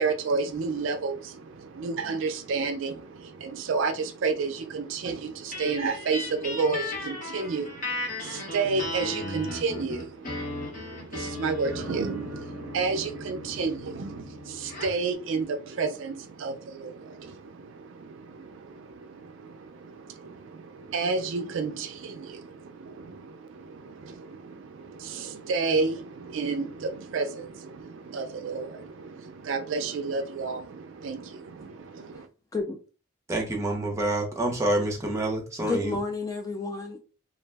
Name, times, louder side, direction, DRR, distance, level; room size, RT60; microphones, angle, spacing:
voice 1, 0.0-32.3, right 4 dB, 70° right, 0.4 m, -31 dB
sound 1, 5.5-15.0, left 2 dB, 40° left, 0.8 m, -36 dB
voice 2, 33.3-36.0, right 1 dB, 15° right, 0.7 m, -27 dB
voice 3, 35.6-37.0, left 3 dB, 15° left, 0.3 m, -31 dB
2.5 x 2.0 x 3.3 m
head